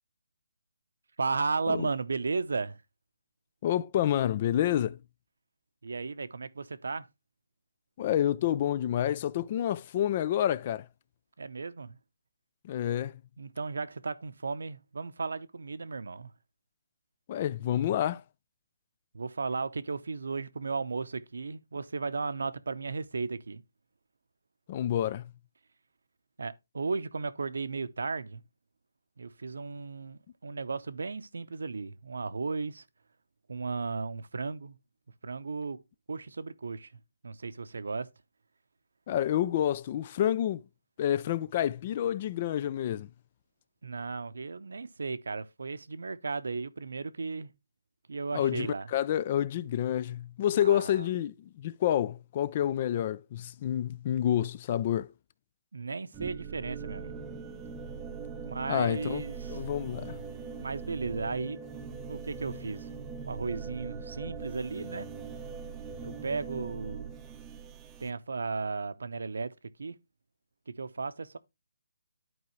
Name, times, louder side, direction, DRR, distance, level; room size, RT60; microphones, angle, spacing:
voice 1, 1.2-2.8 5.8-7.1 11.4-12.0 13.4-16.3 19.1-23.6 26.4-28.4 29.2-32.8 33.5-34.8 35.2-35.8 36.1-36.9 37.2-38.1 43.8-47.5 48.1-48.9 50.6-51.1 55.7-57.2 58.4-59.6 60.6-61.6 62.1-62.9 63.3-65.1 66.0-67.1 68.0-69.5 69.8-70.0 70.7-71.4, right 4 dB, 75° right, 0.7 m, -35 dB
voice 2, 3.6-5.0 8.0-10.9 12.6-13.2 17.3-18.2 24.7-25.3 39.1-40.6 41.0-43.1 48.3-55.1 58.7-59.2 59.5-60.2, left 11 dB, 30° left, 0.3 m, -28 dB
sound 1, 56.1-68.1, right 5 dB, 10° right, 0.7 m, -41 dB
11.0 x 4.7 x 3.1 m
hypercardioid pair, 160°, 0 cm